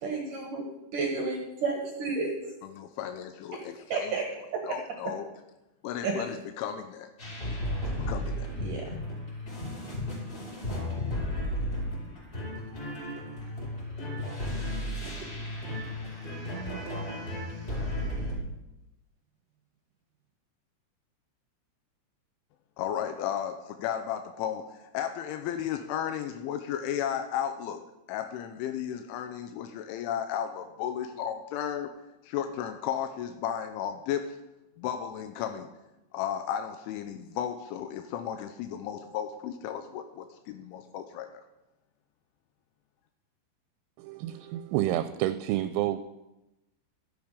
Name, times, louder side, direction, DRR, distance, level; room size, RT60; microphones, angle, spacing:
voice 1, 0.0-0.6 0.9-2.3 3.9-4.3 4.5-4.8 6.0-6.3 8.6-8.9, right 4 dB, 70° right, 2 dB, 2.1 m, -31 dB
voice 2, 2.6-4.2 4.6-5.3 5.8-7.1 8.0-8.5 22.8-27.8 28.1-31.9 32.2-34.4 34.8-35.7 36.1-41.4, left 9 dB, 85° left, 6 dB, 3.2 m, -34 dB
sound 1, 7.2-18.3, left 1 dB, 20° left, 5.1 m, -34 dB
voice 3, 44.0-46.0, right 14 dB, 85° right, 11 dB, 2.9 m, -29 dB
13.0 x 10.5 x 5.2 m, 0.94 s
omnidirectional pair, 5.6 m